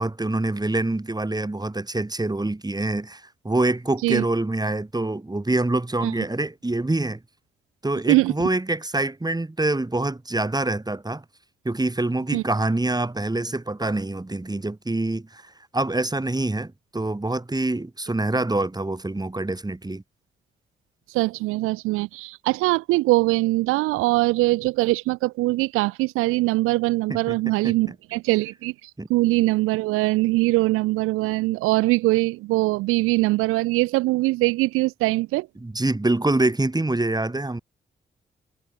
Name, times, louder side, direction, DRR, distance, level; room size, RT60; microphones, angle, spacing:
voice 1, 0.0-7.2 7.8-11.2 11.6-20.0 27.1-27.4 27.6-27.9 29.0-29.1 35.6-37.6, right 2 dB, 20° right, 3.7 m, -25 dB
voice 2, 21.1-35.5, right 20 dB, 90° right, 0.9 m, -22 dB
supercardioid pair, 45°, 21 cm